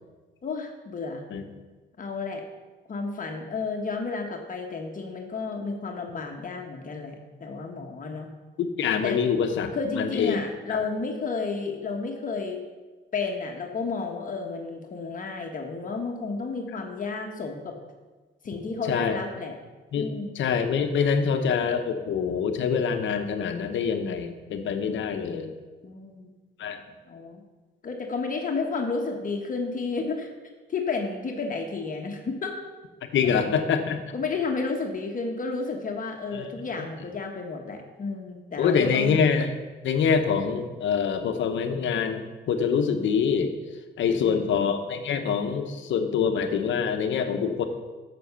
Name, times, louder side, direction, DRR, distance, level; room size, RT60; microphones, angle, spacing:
voice 1, 0.4-1.2 2.0-2.4 2.9-8.3 9.0-9.2 9.7-12.6 13.1-17.8 18.4-19.5 20.0-20.4 25.8-26.3 27.0-27.4 27.8-30.3 30.7-32.5 33.2-33.6 34.1-39.2 44.1-44.5, left 4 dB, 45° left, 2 dB, 1.3 m, -32 dB
voice 2, 8.6-10.4 10.7-10.9 18.9-19.2 19.9-25.5 26.6-26.8 33.1-34.0 36.3-36.5 36.8-36.9 38.6-39.5 39.8-43.5 44.0-47.6, left 6 dB, 70° left, 6 dB, 1.0 m, -25 dB
7.7 x 6.3 x 6.8 m, 1.3 s
cardioid pair, 90°, 20 cm